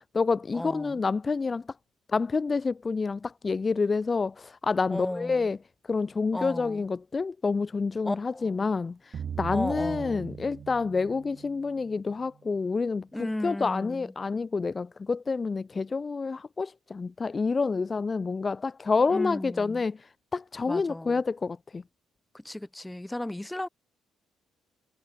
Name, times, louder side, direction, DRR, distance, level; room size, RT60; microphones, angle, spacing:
voice 1, 0.0-1.6 2.1-5.6 5.9-13.1 13.4-21.8, left 4 dB, 30° left, 1.6 m, -28 dB
voice 2, 0.5-1.0 4.9-5.5 6.3-6.9 8.0-8.7 9.5-10.3 13.1-14.1 19.1-19.8 20.6-21.2 22.3-23.7, left 1 dB, 10° left, 5.6 m, -35 dB
sound 1, 9.1-12.2, right 8 dB, 50° right, 7.1 m, -39 dB
cardioid pair, 95°, 0 cm